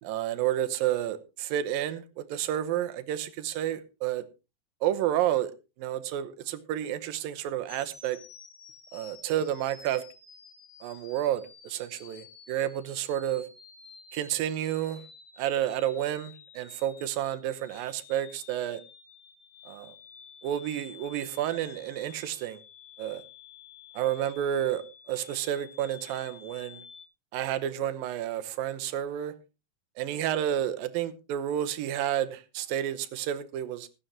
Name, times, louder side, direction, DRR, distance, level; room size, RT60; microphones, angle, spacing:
voice 1, 0.0-4.2 4.8-5.5 5.8-8.2 8.9-10.0 10.8-13.4 14.1-15.0 15.4-18.8 19.7-20.0 20.4-22.6 23.0-23.2 23.9-24.8 25.1-26.8 27.3-29.3 30.0-33.9, right 11 dB, 90° right, 2.7 m, -30 dB
sound 1, 7.7-27.1, left 6 dB, 70° left, 4.5 m, -52 dB
15.5 x 12.5 x 2.9 m
omnidirectional pair, 4.0 m